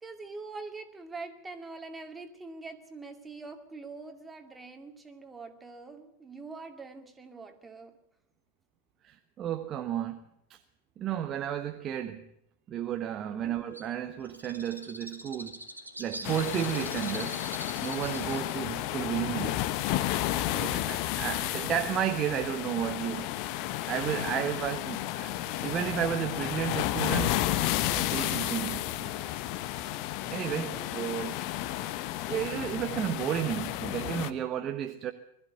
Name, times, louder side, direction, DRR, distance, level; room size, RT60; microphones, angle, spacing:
voice 1, 0.0-7.9 13.4-13.6 18.3-18.5 20.5-21.0 30.6-30.9, right 3 dB, 10° right, 5 dB, 2.4 m, -44 dB
voice 2, 9.0-10.2 10.5-10.6 11.0-12.2 12.7-15.6 16.0-17.4 17.8-19.6 20.5-23.3 23.9-25.3 25.6-27.4 27.9-29.2 30.3-31.4 32.3-35.1, right 10 dB, 30° right, 6 dB, 1.1 m, -32 dB
Bird, 13.7-21.0, right 1 dB, 85° right, 2.4 m, -45 dB
sound 1, 16.2-34.3, left 14 dB, 45° left, 0.9 m, -32 dB
20.5 x 14.0 x 9.3 m, 0.78 s
figure-of-eight pair, 90°, 0 cm